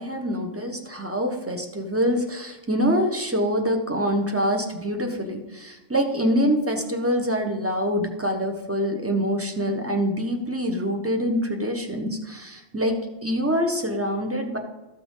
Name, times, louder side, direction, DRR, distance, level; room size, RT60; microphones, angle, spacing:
voice 1, 0.0-13.0 13.2-14.6, equal, 10° right, 4 dB, 1.1 m, -25 dB
13.5 x 5.9 x 5.6 m, 1.0 s
omnidirectional pair, 1.2 m